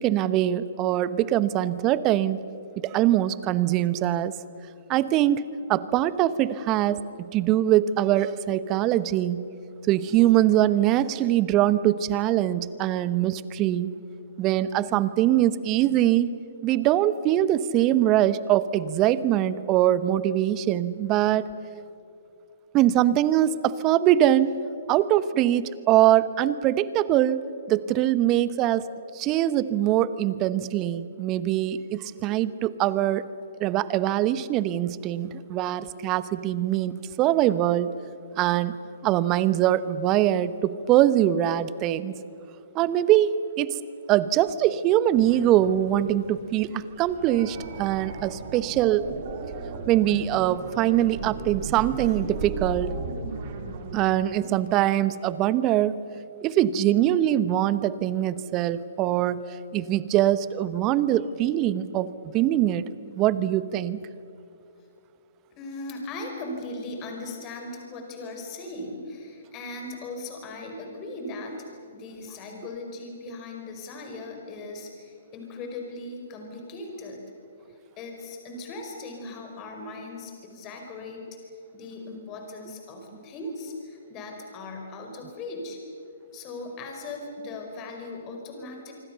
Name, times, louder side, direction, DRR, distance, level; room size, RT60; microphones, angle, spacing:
voice 1, 0.0-2.4 2.8-4.3 4.9-5.4 5.7-9.5 9.9-13.9 14.4-16.3 16.6-21.5 22.7-24.5 24.9-27.4 27.7-28.9 29.1-33.3 33.6-37.9 38.4-38.8 39.0-42.1 42.7-43.8 44.1-49.1 49.9-52.9 53.9-56.0 56.4-64.0, right 12 dB, 30° right, 16 dB, 0.9 m, -23 dB
sound 1, 45.1-54.0, right 4 dB, 45° right, 3.5 m, -36 dB
voice 2, 65.5-77.2 78.0-81.3 81.7-85.8 86.3-88.9, left 2 dB, 30° left, 3 dB, 5.1 m, -38 dB
26.5 x 25.0 x 6.9 m, 2.6 s
figure-of-eight pair, 125°, 0 cm